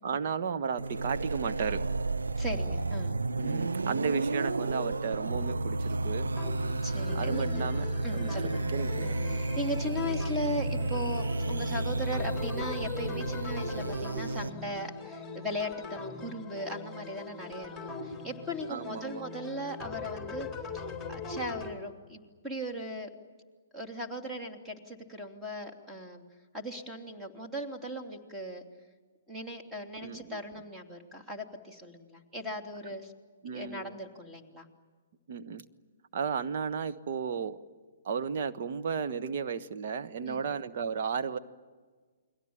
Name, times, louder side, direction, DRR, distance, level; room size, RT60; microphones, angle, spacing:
voice 1, 0.0-1.8 3.3-6.3 7.1-7.9 8.1-9.2 18.7-19.3 30.0-30.4 33.4-33.9 35.3-35.6 36.1-37.6 38.0-41.4, right 6 dB, 50° right, 8 dB, 1.4 m, -34 dB
sound 1, 0.8-14.5, right 2 dB, 80° right, 1.2 m, -32 dB
voice 2, 2.4-3.1 6.8-7.6 8.0-8.6 9.3-20.5 20.7-23.1 23.7-26.2 26.5-28.6 29.3-33.1 33.5-34.7 40.2-40.5, equal, 10° right, 2 dB, 3.2 m, -38 dB
sound 2, 6.4-21.7, left 4 dB, 5° left, 4.4 m, -41 dB
29.5 x 22.0 x 8.9 m, 1.4 s
figure-of-eight pair, 125°, 0 cm